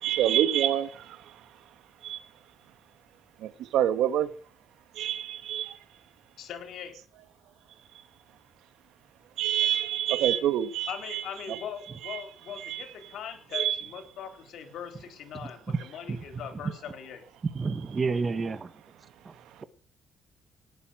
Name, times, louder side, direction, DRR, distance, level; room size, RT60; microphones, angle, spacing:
voice 1, 0.0-1.2 2.0-2.2 3.4-4.3 4.9-5.8 9.4-11.2 11.5-11.6 12.0-12.2 12.6-12.8 13.5-13.8, right 11 dB, 85° right, 1.4 m, -27 dB
voice 2, 6.4-7.0 10.9-17.2, left 8 dB, 75° left, 4.0 m, -40 dB
voice 3, 17.6-18.7, right 4 dB, 35° right, 1.6 m, -29 dB
18.5 x 8.4 x 7.7 m
cardioid pair, 90°, 0 cm